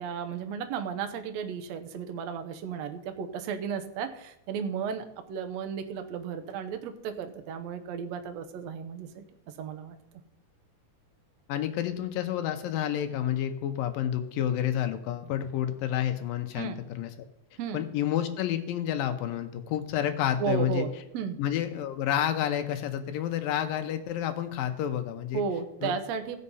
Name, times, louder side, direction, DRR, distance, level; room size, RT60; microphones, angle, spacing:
voice 1, 0.0-9.9 16.5-16.8 17.6-17.8 20.4-21.4 25.3-26.4, right 7 dB, 80° right, 8 dB, 1.5 m, -34 dB
voice 2, 11.5-17.1 17.7-20.9 21.4-25.4 25.8-25.9, left 10 dB, 75° left, 7 dB, 2.4 m, -29 dB
15.5 x 6.4 x 5.5 m, 0.91 s
omnidirectional pair, 4.4 m